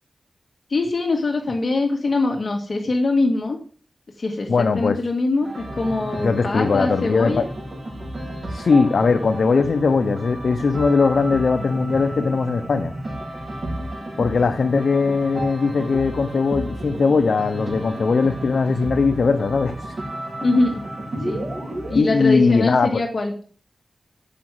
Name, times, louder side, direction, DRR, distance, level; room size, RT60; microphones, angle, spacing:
voice 1, 0.7-3.6 4.2-7.4 20.4-20.9 21.2-21.5 21.9-23.3, left 2 dB, 55° left, 1.8 m, -23 dB
voice 2, 4.5-5.0 6.2-7.4 8.5-12.9 14.2-19.9 21.9-23.0, left 4 dB, 75° left, 0.7 m, -20 dB
sound 1, 5.4-22.0, right 1 dB, 55° right, 4.6 m, -32 dB
8.4 x 6.0 x 7.5 m
wide cardioid pair, 95°, 0 cm